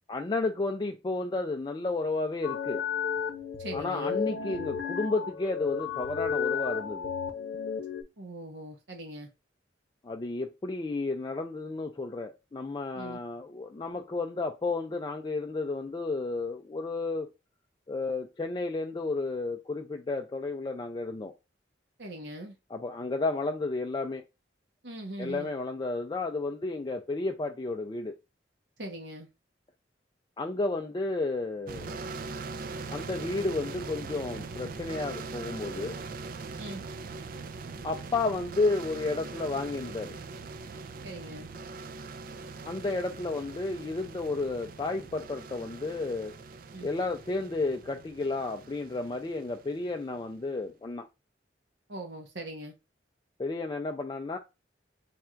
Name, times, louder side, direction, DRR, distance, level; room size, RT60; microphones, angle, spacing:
voice 1, 0.1-2.8 3.7-7.1 10.0-17.3 17.9-21.3 22.7-24.2 25.2-28.1 30.4-32.1 32.9-36.0 37.8-40.1 42.7-46.3 46.8-51.1 53.4-54.4, left 3 dB, 25° left, 0.4 m, -32 dB
sound 1, 2.4-8.0, left 6 dB, 75° left, 0.7 m, -33 dB
voice 2, 3.6-4.2 8.2-9.3 12.9-13.2 22.0-22.5 24.8-25.5 28.8-29.3 36.6-36.8 41.0-41.5 46.7-46.9 51.9-52.7, right 1 dB, 75° right, 1.1 m, -41 dB
sound 2, 31.7-50.3, right 4 dB, 50° right, 0.4 m, -41 dB
3.4 x 2.4 x 4.3 m
head